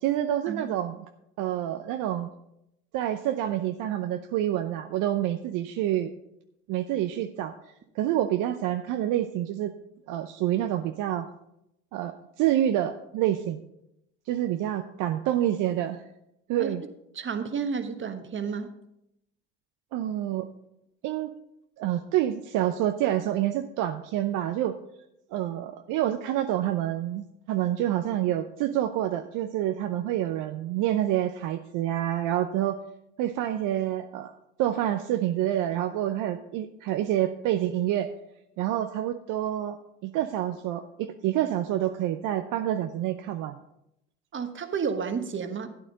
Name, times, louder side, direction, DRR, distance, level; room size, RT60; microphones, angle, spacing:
voice 1, 0.0-1.0 1.4-2.3 2.9-6.1 6.7-7.5 8.0-9.7 10.1-11.3 11.9-13.6 14.3-16.0 16.5-16.8 19.9-20.5 21.0-21.3 21.8-24.8 25.3-32.8 33.2-34.3 34.6-38.1 38.6-39.8 40.0-43.6, right 12 dB, 60° right, 7 dB, 0.7 m, -27 dB
voice 2, 17.1-18.7 44.3-45.7, right 6 dB, 35° right, 8 dB, 1.3 m, -31 dB
12.5 x 9.1 x 3.9 m, 0.82 s
hypercardioid pair, 75°, 34 cm